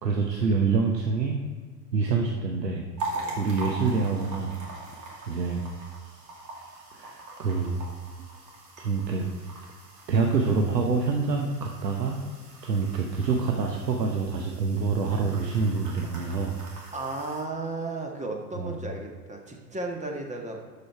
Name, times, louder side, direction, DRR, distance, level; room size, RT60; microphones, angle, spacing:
voice 1, 0.0-1.4 1.9-2.8 3.4-4.6 4.9-5.7 6.9-7.8 8.8-9.2 10.1-12.2 12.6-16.6 18.6-18.7, right 4 dB, 80° right, 1 dB, 1.0 m, -26 dB
sound 1, 3.0-17.4, right 2 dB, 35° right, 2.6 m, -42 dB
voice 2, 16.9-20.6, right 2 dB, 15° right, 2 dB, 1.4 m, -34 dB
12.5 x 5.4 x 4.5 m, 1.5 s
figure-of-eight pair, 85°, 48 cm